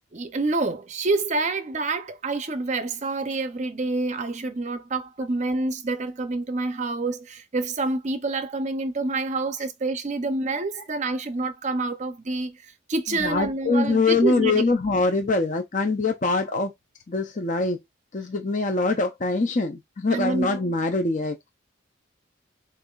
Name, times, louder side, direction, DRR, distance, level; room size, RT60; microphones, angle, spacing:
voice 1, 0.1-14.6 20.1-20.6, right 3 dB, 35° right, 0.5 m, -27 dB
voice 2, 13.1-16.7 17.1-17.8 18.1-21.5, left 3 dB, 35° left, 0.5 m, -24 dB
6.7 x 2.5 x 2.3 m
head